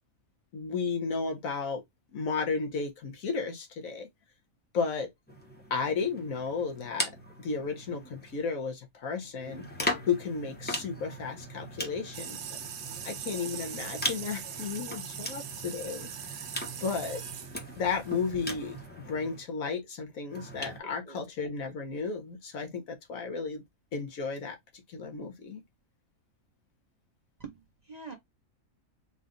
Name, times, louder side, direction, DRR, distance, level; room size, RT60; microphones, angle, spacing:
voice 1, 0.5-1.8 2.1-4.1 4.7-5.1 5.7-7.1 7.4-9.7 10.1-12.5 13.0-16.4 16.8-17.2 17.8-18.8 19.0-23.6 23.9-24.6 24.9-25.6, left 5 dB, 75° left, 1.5 m, -33 dB
sound 1, 5.3-8.5 9.4-19.4 20.3-20.8, equal, 10° left, 0.8 m, -39 dB
sound 2, 12.1-18.9, right 9 dB, 65° right, 0.9 m, -42 dB
voice 2, 20.8-21.5 27.4-28.1, right 4 dB, 35° right, 0.8 m, -46 dB
4.0 x 2.5 x 3.7 m
omnidirectional pair, 1.4 m